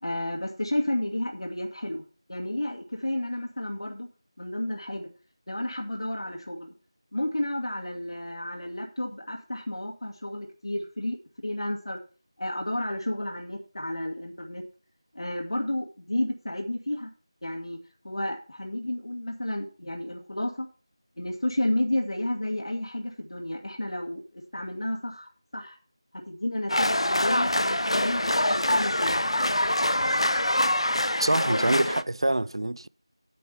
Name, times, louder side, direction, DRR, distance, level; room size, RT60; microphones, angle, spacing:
voice 1, 0.0-2.0 2.3-4.1 4.4-5.1 5.5-6.7 7.1-11.2 11.4-12.0 12.4-14.6 15.1-17.1 17.4-17.8 18.0-20.7 21.2-25.8 26.1-29.2, left 1 dB, 70° left, 2.1 m, -31 dB
sound 1, 26.7-32.0, left 1 dB, 90° left, 0.8 m, -25 dB
voice 2, 31.2-32.9, right 1 dB, 65° right, 0.4 m, -25 dB
10.0 x 7.6 x 5.6 m
figure-of-eight pair, 175°, 3 cm